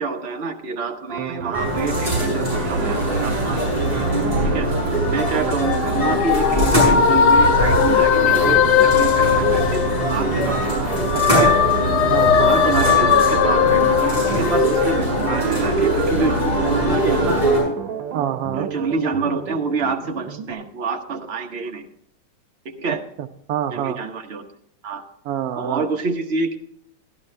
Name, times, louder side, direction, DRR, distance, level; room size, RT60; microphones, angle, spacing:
voice 1, 0.0-3.6 4.4-4.7 5.0-9.8 10.1-10.7 11.4-11.6 12.4-17.5 18.5-21.9 22.6-23.0 23.7-24.4 24.8-25.0 25.5-26.6, right 4 dB, 45° right, 4 dB, 1.0 m, -27 dB
sound 1, 1.1-20.5, right 8 dB, 85° right, 1.6 m, -31 dB
sound 2, 1.5-17.6, right 1 dB, 20° right, 6.0 m, -22 dB
sound 3, 5.5-10.5 10.8-15.6, left 8 dB, 70° left, 1.2 m, -19 dB
voice 2, 11.1-11.5 12.1-12.6 18.1-18.7 23.2-24.0 25.3-25.9, right 10 dB, 70° right, 8 dB, 0.9 m, -26 dB
12.5 x 11.5 x 3.3 m, 0.71 s
omnidirectional pair, 2.0 m